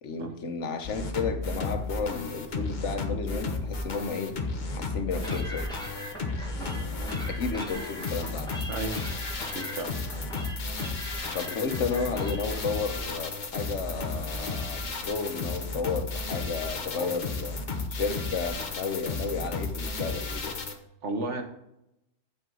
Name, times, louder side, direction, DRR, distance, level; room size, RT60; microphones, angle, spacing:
voice 1, 0.0-4.5 4.7-5.9 7.3-8.5 11.3-17.6 17.9-20.6, left 5 dB, 80° left, 7 dB, 1.3 m, -33 dB
sound 1, 0.8-20.7, left 3 dB, 45° left, 1.1 m, -33 dB
sound 2, 5.2-12.6, equal, 5° left, 1.5 m, -42 dB
voice 2, 9.5-10.0 17.0-17.1 21.0-21.4, right 2 dB, 80° right, 5 dB, 1.5 m, -34 dB
8.5 x 7.9 x 3.9 m, 0.82 s
omnidirectional pair, 1.2 m